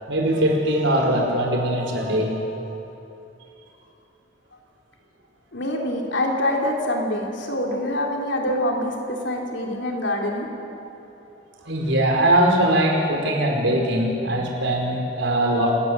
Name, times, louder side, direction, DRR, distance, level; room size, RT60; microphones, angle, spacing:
voice 1, 0.1-2.4 10.8-10.9 11.6-15.7, right 1 dB, 70° right, 0 dB, 4.8 m, -21 dB
voice 2, 5.5-10.5, left 1 dB, 65° left, 0 dB, 3.5 m, -25 dB
27.5 x 17.5 x 7.7 m, 2.9 s
head